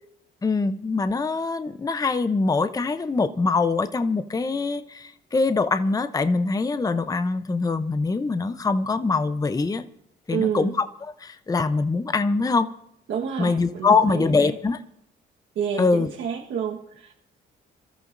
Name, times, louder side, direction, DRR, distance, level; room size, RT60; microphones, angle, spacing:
voice 1, 0.4-9.8 10.3-12.7 13.4-14.8 15.8-16.1, left 4 dB, 20° left, 10 dB, 0.6 m, -23 dB
voice 2, 10.3-10.7 13.1-14.5 15.5-17.2, right 7 dB, 70° right, 0 dB, 1.4 m, -29 dB
27.5 x 13.5 x 2.6 m, 0.72 s
cardioid pair, 90°, 20 cm